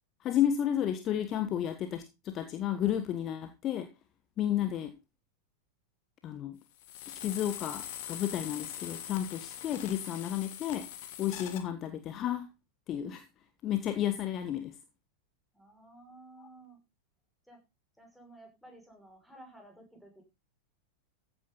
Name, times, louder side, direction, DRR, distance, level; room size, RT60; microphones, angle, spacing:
voice 1, 0.2-3.9 4.4-4.9 6.2-6.6 7.2-10.9 11.2-12.4 12.9-13.2 13.6-14.7 16.4-16.5, left 10 dB, 30° left, 9 dB, 1.3 m, -32 dB
sound 1, 6.8-11.6, left 10 dB, 50° left, 2.1 m, -42 dB
voice 2, 15.5-16.8 17.5-17.6 18.0-20.2, right 1 dB, ahead, 1 dB, 5.7 m, -54 dB
14.5 x 9.2 x 3.9 m, 0.26 s
figure-of-eight pair, 90°, 0 cm